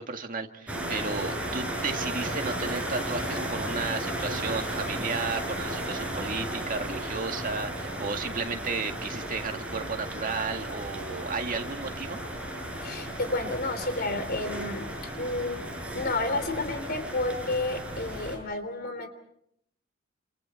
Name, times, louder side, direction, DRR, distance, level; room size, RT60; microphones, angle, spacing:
voice 1, 0.0-12.2, right 4 dB, 45° right, 4 dB, 2.0 m, -33 dB
sound 1, 0.7-18.4, right 1 dB, 5° right, 6.6 m, -34 dB
voice 2, 12.8-14.9 15.1-15.6 15.9-19.1, left 2 dB, 50° left, 9 dB, 3.5 m, -31 dB
30.0 x 28.5 x 4.4 m, 0.71 s
head